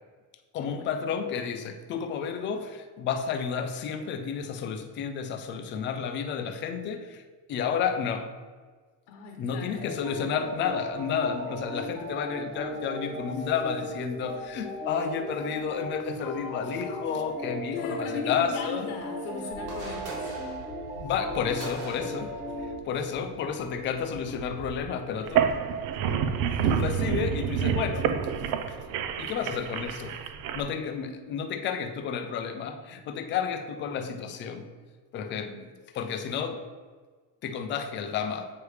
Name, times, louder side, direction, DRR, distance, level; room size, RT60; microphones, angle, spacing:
voice 1, 0.5-7.2 7.5-8.3 9.4-18.9 21.0-22.4 22.9-25.6 26.5-28.1 28.7-28.8 29.2-30.2 30.5-34.7 35.1-35.7 35.9-36.6 37.4-38.5, left 7 dB, 30° left, 6 dB, 0.4 m, -31 dB
voice 2, 9.1-9.8 17.7-20.3 35.4-35.7, left 4 dB, 75° left, 2 dB, 1.0 m, -37 dB
sound 1, 9.8-22.8 23.1-23.2 23.6-23.7 24.0-24.6 25.3-26.8 27.7-28.0 28.6-29.0 29.3-29.6, equal, 10° right, 1.1 m, -38 dB
sound 2, 19.5-24.8, right 2 dB, 85° right, 2.0 m, -43 dB
sound 3, 25.2-30.6, right 8 dB, 50° right, 0.5 m, -28 dB
8.1 x 4.8 x 3.2 m, 1.4 s
cardioid pair, 175°, 42 cm